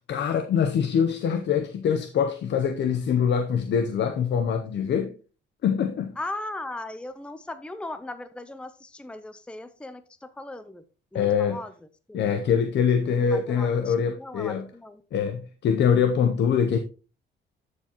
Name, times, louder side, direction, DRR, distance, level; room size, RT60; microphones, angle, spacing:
voice 1, 0.1-5.1 5.6-6.2 11.1-11.6 12.1-14.7 15.1-16.8, left 7 dB, 65° left, 0.8 m, -24 dB
voice 2, 6.2-10.8 11.1-11.7 12.1-12.4 13.1-15.0, left 2 dB, 5° left, 0.6 m, -38 dB
13.0 x 4.8 x 3.0 m
cardioid pair, 90°, 20 cm